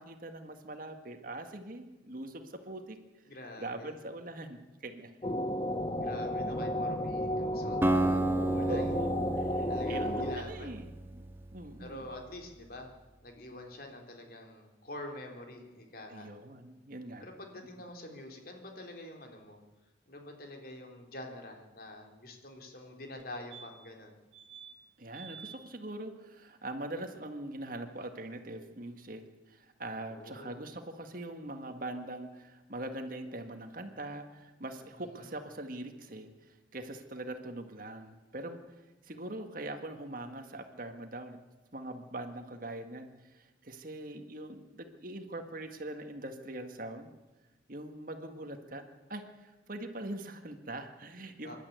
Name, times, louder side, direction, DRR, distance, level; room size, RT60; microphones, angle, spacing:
voice 1, 0.0-3.0 3.6-5.1 8.7-11.2 11.5-12.1 16.1-17.3 25.0-29.2 29.5-36.3 36.7-38.6 39.0-41.4 41.7-47.1 47.7-48.8 49.1-51.6, right 1 dB, 45° right, 6 dB, 1.8 m, -42 dB
voice 2, 3.3-3.9 6.0-8.9 9.7-10.8 11.8-12.9 13.2-16.3 17.2-19.6 20.1-24.2 30.1-30.5 35.0-35.3 51.4-51.6, left 1 dB, 50° left, 3 dB, 3.5 m, -46 dB
sound 1, 5.2-10.4, left 1 dB, 25° left, 1.1 m, -33 dB
Acoustic guitar, 7.8-11.9, right 2 dB, 10° right, 0.7 m, -32 dB
Smoke Detector, 23.2-23.3 23.5-24.0 24.3-24.7 25.1-25.6 28.0-28.1 28.2-28.3, right 7 dB, 75° right, 1.4 m, -49 dB
26.0 x 11.5 x 9.4 m, 1.2 s
head